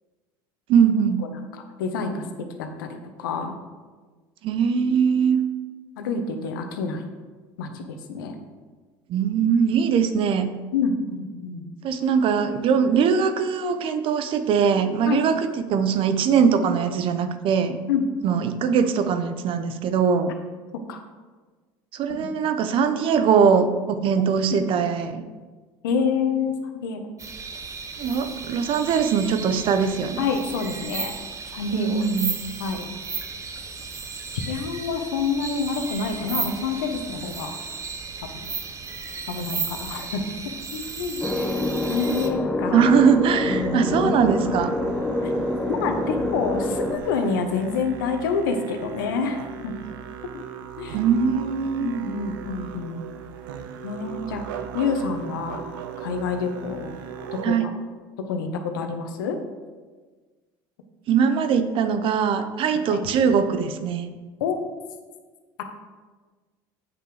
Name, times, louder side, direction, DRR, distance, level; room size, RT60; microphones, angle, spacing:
voice 1, 0.7-1.3 4.4-5.4 9.1-10.5 11.8-15.4 15.6-17.8 18.2-20.3 21.9-25.2 28.0-30.3 31.7-32.4 42.7-44.7 50.9-51.9 57.4-57.7 61.1-64.1, right 6 dB, 55° right, 9 dB, 0.8 m, -21 dB
voice 2, 1.2-2.3 2.6-3.5 6.0-7.0 7.6-8.4 10.7-11.6 15.1-15.2 17.9-18.1 20.9-21.0 22.1-22.3 24.5-24.6 25.8-26.5 26.8-27.0 30.2-31.1 31.5-32.1 32.6-32.9 34.3-37.6 38.2-38.3 39.3-40.2 40.7-41.5 41.9-42.9 43.4-44.2 45.2-45.3 45.7-49.7 50.8-51.0 51.8-53.0 53.8-54.4 54.7-55.6 56.0-56.9 57.3-57.7 58.2-59.4 62.9-63.0 64.4-64.6, left 5 dB, 85° left, 6 dB, 1.0 m, -27 dB
sound 1, 27.2-42.3, right 5 dB, 30° right, 1.0 m, -34 dB
sound 2, 41.2-47.0, left 1 dB, 5° left, 0.8 m, -26 dB
Musical instrument, 43.5-57.5, right 8 dB, 85° right, 0.7 m, -38 dB
8.0 x 6.0 x 4.9 m, 1.4 s
supercardioid pair, 85°, 11 cm